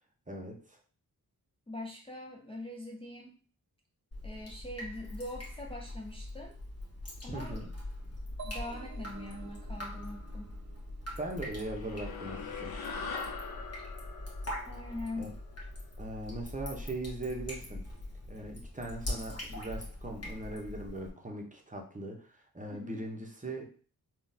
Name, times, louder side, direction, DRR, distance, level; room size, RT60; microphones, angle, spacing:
voice 1, 0.3-0.8 7.3-7.7 11.2-12.7 15.2-15.3 16.0-17.8 18.3-23.6, right 2 dB, 20° right, 1 dB, 0.8 m, -40 dB
voice 2, 1.7-3.4 4.2-6.6 7.2-7.6 8.4-10.6 14.7-15.3 16.8-16.9 22.7-23.0, left 1 dB, 15° left, -1 dB, 0.5 m, -43 dB
Drip, 4.1-21.1, left 1 dB, 40° left, 1.4 m, -42 dB
sound 1, 8.4-12.1, right 6 dB, 45° right, 0.5 m, -51 dB
sound 2, 11.6-16.3, left 5 dB, 70° left, 0.6 m, -42 dB
3.7 x 2.4 x 2.7 m, 0.41 s
cardioid pair, 50°, 39 cm